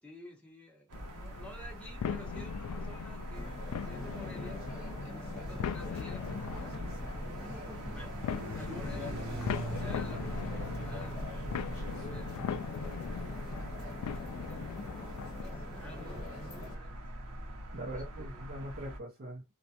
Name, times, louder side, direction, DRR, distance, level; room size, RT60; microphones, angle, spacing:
voice 1, 0.0-3.6 3.8-4.6 5.0-6.8 7.4-8.2 8.5-11.3 11.7-13.6 14.0-15.1 15.4-17.1 17.8-18.5, equal, 5° left, 0.7 m, -52 dB
sound 1, 0.9-15.4, left 7 dB, 85° left, 0.3 m, -40 dB
sound 2, 0.9-19.0, right 1 dB, 90° right, 0.7 m, -42 dB
sound 3, 3.3-16.8, left 2 dB, 45° left, 1.0 m, -44 dB
voice 2, 7.4-8.0 11.5-11.7 17.7-19.5, right 1 dB, 45° right, 0.6 m, -43 dB
2.3 x 2.1 x 2.7 m
head